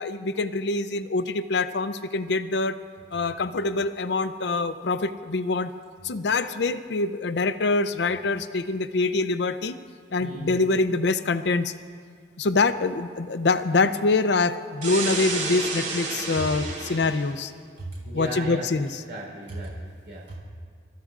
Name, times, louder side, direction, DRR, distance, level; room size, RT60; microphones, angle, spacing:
voice 1, 0.0-2.8 3.1-5.7 6.0-9.8 10.1-11.7 12.4-17.5 18.1-19.0, left 3 dB, 70° left, 12 dB, 0.6 m, -25 dB
voice 2, 10.2-10.6 16.3-16.4 17.8-18.7 19.1-20.3, right 1 dB, 65° right, -4 dB, 4.0 m, -36 dB
sound 1, 14.8-17.3, right 3 dB, 45° right, 4.3 m, -30 dB
28.5 x 14.0 x 2.5 m, 2.1 s
head